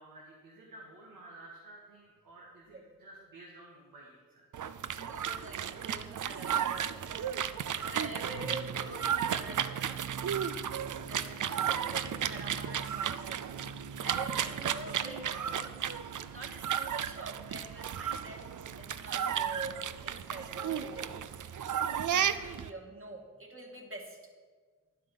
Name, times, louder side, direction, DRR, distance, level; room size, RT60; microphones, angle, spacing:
voice 1, 0.0-4.4, right 2 dB, 90° right, -3 dB, 1.6 m, -52 dB
sound 1, 4.5-22.7, right 8 dB, 65° right, 0.5 m, -34 dB
voice 2, 4.9-7.2 7.8-10.1 10.8-13.6 14.0-15.7 16.3-21.2 22.2-24.2, right 2 dB, 40° right, 1 dB, 2.2 m, -45 dB
10.5 x 7.5 x 5.5 m, 1.5 s
cardioid pair, 45°, 33 cm